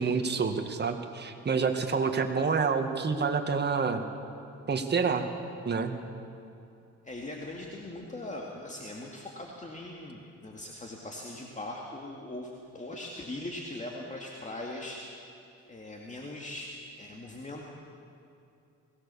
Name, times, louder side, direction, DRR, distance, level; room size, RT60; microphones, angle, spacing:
voice 1, 0.0-4.0 4.7-5.3 5.7-6.0, right 5 dB, 35° right, 5 dB, 1.9 m, -28 dB
voice 2, 7.0-15.2 15.7-17.7, left 1 dB, 25° left, -1 dB, 2.2 m, -40 dB
22.0 x 17.0 x 7.1 m, 2.7 s
cardioid pair, 90°, 30 cm